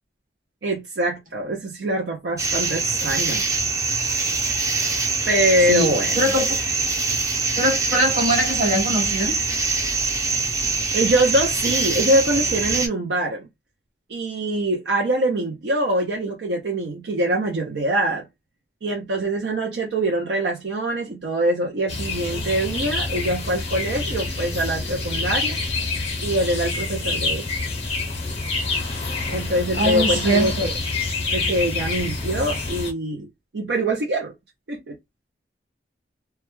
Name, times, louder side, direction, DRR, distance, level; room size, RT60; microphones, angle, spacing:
voice 1, 0.6-3.5 5.3-6.2 10.9-13.5 14.1-18.3 18.8-25.6 26.2-27.6 29.3-30.8 31.3-33.3 33.5-34.3 34.7-35.0, right 1 dB, 75° right, 0.5 m, -24 dB
sound 1, 2.4-12.9, right 3 dB, 20° right, 0.5 m, -24 dB
voice 2, 5.7-6.6 7.6-9.4 29.8-30.7, equal, 50° right, 1.2 m, -22 dB
sound 2, 21.9-32.9, left 3 dB, 35° left, 0.6 m, -27 dB
2.2 x 2.1 x 2.9 m
head